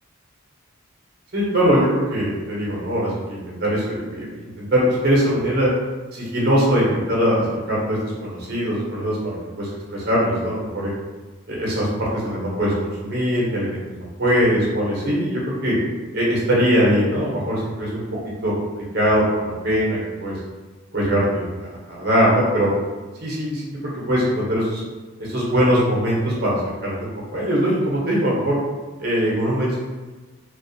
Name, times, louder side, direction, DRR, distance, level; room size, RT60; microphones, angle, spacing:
voice 1, 1.3-5.7 6.1-10.9 11.5-15.7 16.1-18.0 18.4-18.5 18.9-20.4 20.9-22.7 23.2-23.7 24.1-24.8 25.2-26.6 26.8-28.6 29.0-29.8, equal, 50° right, -6 dB, 0.7 m, -21 dB
2.3 x 2.3 x 2.6 m, 1.3 s
head